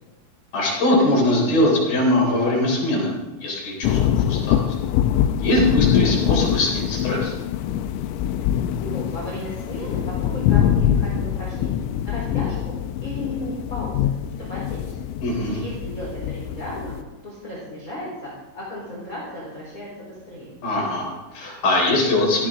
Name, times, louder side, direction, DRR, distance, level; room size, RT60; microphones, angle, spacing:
voice 1, 0.5-3.2 3.4-4.0 4.3-4.6 5.4-7.3 15.2-15.6 20.6-22.5, left 1 dB, 50° left, -2 dB, 5.2 m, -21 dB
sound 1, 3.8-17.0, left 10 dB, 90° left, 3.3 m, -24 dB
voice 2, 8.3-12.7 13.0-14.1 14.4-15.0 15.5-16.9 17.2-18.3 18.5-20.5, equal, 20° left, -6 dB, 3.5 m, -35 dB
17.5 x 15.0 x 3.7 m, 1.1 s
omnidirectional pair, 5.8 m